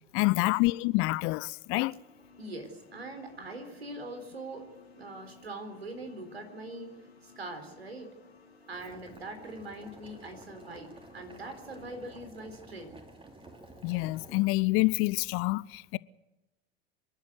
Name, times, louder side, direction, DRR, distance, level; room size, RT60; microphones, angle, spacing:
voice 1, 0.1-1.9 13.8-16.0, left 22 dB, 45° left, 0.6 m, -27 dB
sound 1, 1.8-12.2, left 4 dB, 90° left, 2.1 m, -58 dB
voice 2, 2.4-4.7 5.0-6.9 7.2-8.1 8.7-12.9, right 2 dB, 85° right, 4.0 m, -42 dB
Boiling, 8.7-14.4, right 2 dB, 15° right, 3.2 m, -52 dB
26.5 x 11.5 x 9.6 m
figure-of-eight pair, 75°, 30 cm